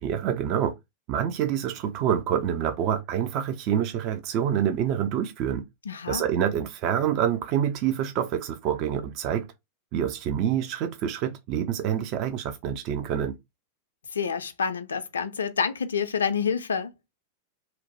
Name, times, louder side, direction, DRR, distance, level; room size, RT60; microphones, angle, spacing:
voice 1, 0.0-0.7 1.1-5.6 6.1-9.5 9.9-13.4, right 9 dB, 40° right, 0.3 m, -27 dB
voice 2, 5.9-6.2 14.1-16.9, left 6 dB, 70° left, 0.3 m, -28 dB
2.9 x 2.0 x 2.8 m
figure-of-eight pair, 90°, 0 cm